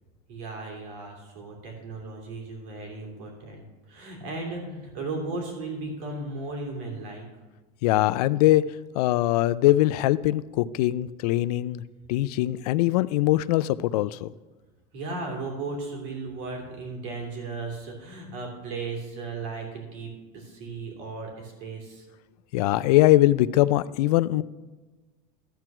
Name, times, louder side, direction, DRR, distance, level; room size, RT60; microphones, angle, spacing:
voice 1, 0.3-7.2 14.9-22.0, right 3 dB, 55° right, 1 dB, 2.9 m, -36 dB
voice 2, 7.8-8.6 9.0-11.8 12.1-14.3 22.5-24.4, left 16 dB, 90° left, 17 dB, 0.4 m, -22 dB
13.0 x 4.5 x 6.0 m, 1.3 s
cardioid pair, 175°, 19 cm